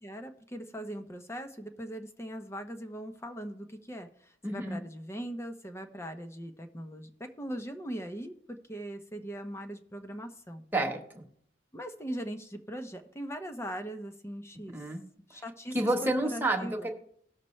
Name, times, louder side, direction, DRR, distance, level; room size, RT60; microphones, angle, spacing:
voice 1, 0.0-10.6 11.7-14.8 15.3-15.8 16.0-16.9, equal, 15° left, 6 dB, 0.8 m, -40 dB
voice 2, 4.4-4.8 10.7-11.2 14.7-15.0 15.7-16.9, right 1 dB, 10° right, 2 dB, 1.4 m, -29 dB
17.5 x 6.6 x 3.2 m, 0.66 s
head